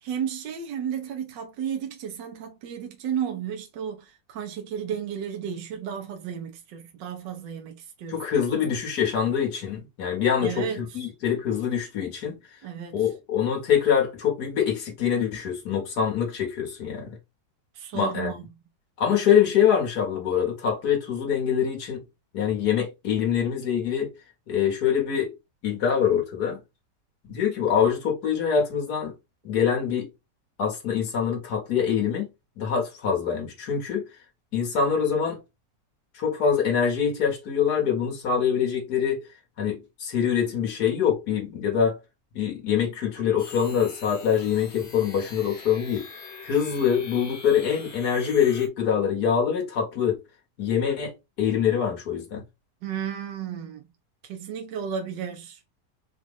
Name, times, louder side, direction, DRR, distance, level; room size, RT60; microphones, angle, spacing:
voice 1, 0.0-8.4 10.4-11.0 12.6-13.0 17.7-18.4 52.8-53.9 54.2-55.6, right 8 dB, 80° right, 1.5 m, -33 dB
voice 2, 8.1-12.4 12.9-17.2 17.9-18.4 19.0-22.0 22.3-24.1 24.5-25.3 25.6-26.6 27.3-29.1 29.4-30.1 30.6-32.3 32.6-34.1 34.5-35.4 36.1-39.2 39.6-42.0 42.3-46.1 46.4-50.2 50.6-52.4, left 8 dB, 60° left, 2.0 m, -24 dB
sound 1, 43.4-48.7, left 4 dB, 45° left, 1.1 m, -43 dB
5.0 x 2.5 x 3.4 m
omnidirectional pair, 1.9 m